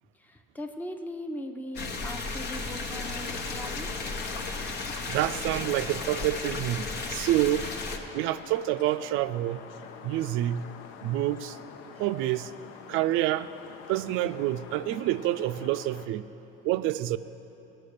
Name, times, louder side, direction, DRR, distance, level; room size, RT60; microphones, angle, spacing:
voice 1, 0.1-4.0, equal, 10° left, 4 dB, 0.7 m, -39 dB
sound 1, 1.8-8.0, left 3 dB, 55° left, 1.0 m, -34 dB
sound 2, 2.9-16.1, left 7 dB, 75° left, 0.7 m, -46 dB
voice 2, 5.1-7.7 8.1-9.6 10.0-10.7 11.0-11.6 12.0-12.5 12.9-13.5 13.9-16.3 16.6-17.2, right 14 dB, 75° right, 13 dB, 0.4 m, -27 dB
17.5 x 6.0 x 6.6 m, 3.0 s
cardioid pair, 110°, 21 cm